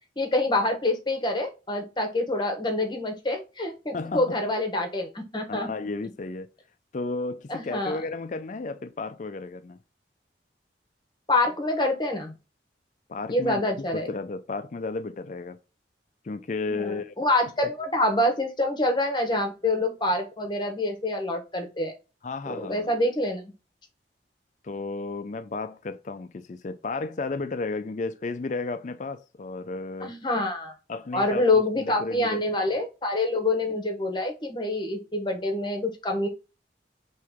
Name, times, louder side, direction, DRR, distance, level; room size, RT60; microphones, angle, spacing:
voice 1, 0.2-5.7 7.5-8.0 11.3-12.3 13.3-14.1 16.7-21.9 22.5-23.5 30.0-30.7 31.1-36.3, left 2 dB, 25° left, 1.0 m, -26 dB
voice 2, 3.9-4.4 5.5-6.5 6.9-9.8 13.1-15.6 16.2-17.1 22.2-22.9 24.6-30.1 30.9-32.8, left 3 dB, 45° left, 0.4 m, -33 dB
4.7 x 3.0 x 3.6 m
head